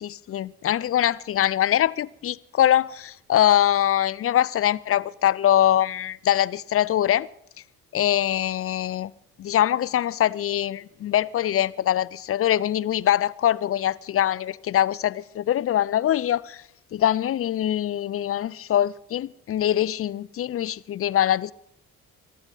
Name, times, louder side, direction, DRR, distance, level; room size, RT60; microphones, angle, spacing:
voice 1, 0.0-7.3 7.9-9.1 9.4-21.5, left 11 dB, 35° left, 0.5 m, -23 dB
23.0 x 12.5 x 4.0 m
figure-of-eight pair, 40°, 44 cm